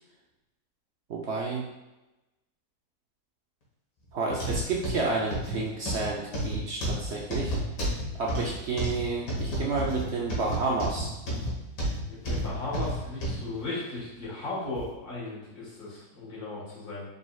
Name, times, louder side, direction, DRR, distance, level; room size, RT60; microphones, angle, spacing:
voice 1, 1.1-1.7 4.1-7.5 8.2-11.1, right 3 dB, 70° right, -2 dB, 0.6 m, -30 dB
sound 1, 4.3-13.4 14.0-14.1 14.8-14.9, equal, 90° left, 2.0 m, -31 dB
voice 2, 12.1-17.0, left 2 dB, 65° left, -6 dB, 2.1 m, -36 dB
4.7 x 4.1 x 2.3 m, 1.0 s
omnidirectional pair, 1.8 m